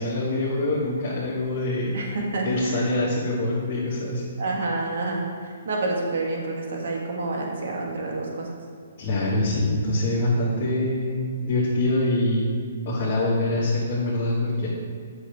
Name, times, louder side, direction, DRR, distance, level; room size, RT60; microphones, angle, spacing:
voice 1, 0.0-1.9 2.4-4.2 9.0-12.5 12.8-14.7, left 1 dB, 30° left, -9 dB, 1.5 m, -24 dB
voice 2, 1.9-2.9 4.4-8.5, right 2 dB, 65° right, 0 dB, 1.5 m, -28 dB
8.4 x 6.0 x 3.4 m, 2.2 s
hypercardioid pair, 155°, 0 cm